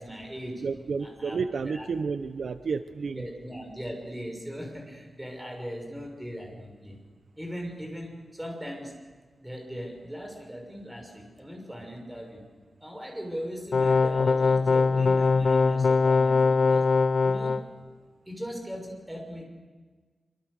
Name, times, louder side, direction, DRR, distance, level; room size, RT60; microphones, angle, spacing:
voice 1, 0.0-0.6 1.0-1.9 3.1-7.0 7.3-8.9 9.4-12.4 12.8-16.9 17.2-17.6 18.3-19.4, equal, 10° right, 2 dB, 6.1 m, -39 dB
voice 2, 0.6-3.2, right 5 dB, 70° right, 10 dB, 0.9 m, -31 dB
sound 1, 13.7-17.6, left 4 dB, 60° left, 1.4 m, -22 dB
26.0 x 25.0 x 6.7 m, 1.4 s
wide cardioid pair, 140°, 0 cm